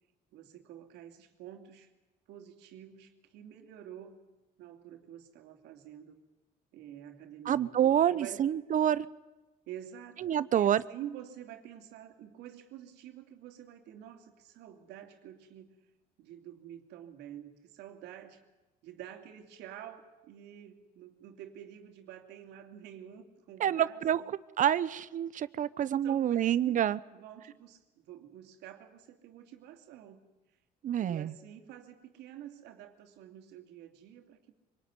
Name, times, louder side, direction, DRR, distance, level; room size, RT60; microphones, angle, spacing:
voice 1, 0.3-1.9 2.3-4.2 4.6-6.2 6.7-8.4 9.7-15.7 16.2-18.4 18.8-24.3 25.8-26.6 27.1-30.3 31.0-34.5, right 10 dB, 85° right, 5 dB, 2.8 m, -48 dB
voice 2, 7.5-9.1 10.2-10.8 23.6-24.2 24.6-27.0 30.8-31.3, right 10 dB, 50° right, 17 dB, 0.8 m, -27 dB
25.0 x 19.5 x 9.7 m, 1.1 s
cardioid pair, 110°, 17 cm